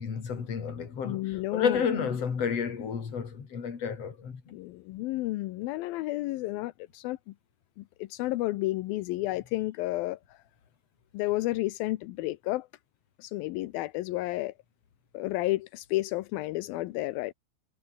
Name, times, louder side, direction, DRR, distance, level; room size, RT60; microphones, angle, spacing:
voice 1, 0.0-4.5, left 6 dB, 40° left, 3.8 m, -31 dB
voice 2, 1.0-1.8 4.5-7.2 8.1-10.2 11.1-12.7 13.2-14.5 15.1-17.3, left 18 dB, 80° left, 2.2 m, -31 dB
omnidirectional pair, 5.0 m